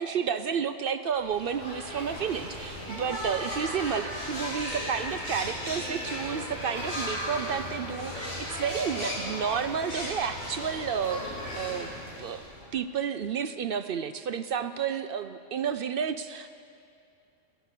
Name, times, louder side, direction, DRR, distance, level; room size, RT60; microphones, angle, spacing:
voice 1, 0.0-11.9 12.2-12.4 12.7-16.5, right 7 dB, 60° right, 10 dB, 0.6 m, -31 dB
Cotorras pavo human voices, 1.1-12.7, equal, 35° left, 3.6 m, -36 dB
15.5 x 11.0 x 8.2 m, 2.5 s
omnidirectional pair, 1.3 m